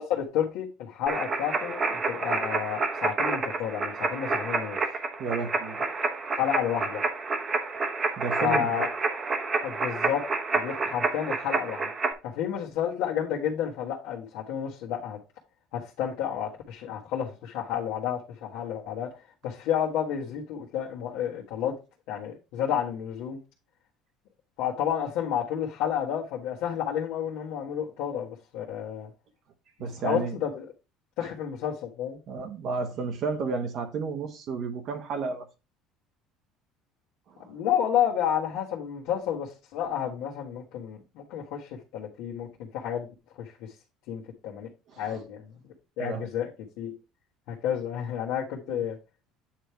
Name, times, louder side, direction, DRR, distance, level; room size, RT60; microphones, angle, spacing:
voice 1, 0.0-4.8 6.3-7.0 8.4-8.9 9.6-10.2 10.5-11.9 12.2-15.2 15.7-19.1 19.4-21.7 22.1-23.4 24.6-29.1 30.0-30.7 31.2-32.2 37.5-43.1 43.4-43.5 44.1-44.7 45.0-45.4 46.0-46.5 46.8-46.9 47.5-49.0, left 9 dB, 75° left, 1.4 m, -30 dB
sound 1, 1.1-12.1, right 4 dB, 25° right, 1.0 m, -29 dB
voice 2, 5.2-5.8 8.2-8.7 29.8-30.3 32.3-35.5 37.3-37.5 44.9-45.2 46.0-46.3 48.7-48.8, right 5 dB, 50° right, 1.1 m, -32 dB
8.9 x 3.4 x 4.5 m
cardioid pair, 140°, 0 cm